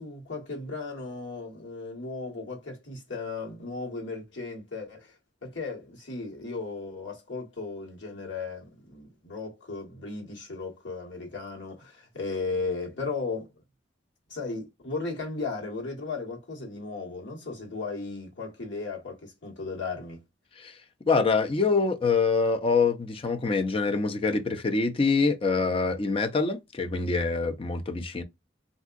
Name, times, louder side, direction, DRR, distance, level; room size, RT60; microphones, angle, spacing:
voice 1, 0.0-5.2 5.4-13.5 14.3-20.2, left 3 dB, 80° left, 1.5 m, -36 dB
voice 2, 21.1-28.2, left 4 dB, 30° left, 0.4 m, -25 dB
3.5 x 2.6 x 2.4 m
head